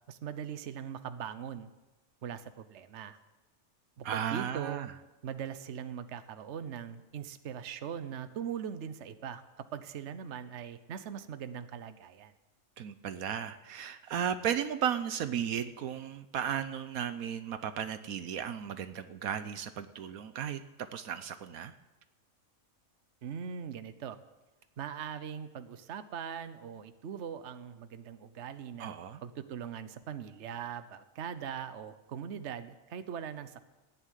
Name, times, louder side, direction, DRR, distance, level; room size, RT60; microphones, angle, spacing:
voice 1, 0.1-1.7 2.2-3.2 4.0-4.9 5.2-12.3 23.2-24.2 24.8-33.6, right 8 dB, 55° right, 11 dB, 1.1 m, -41 dB
voice 2, 4.0-4.9 12.8-21.7 28.8-29.2, right 9 dB, 75° right, 11 dB, 1.2 m, -35 dB
15.0 x 9.9 x 9.3 m, 1.1 s
omnidirectional pair, 1.5 m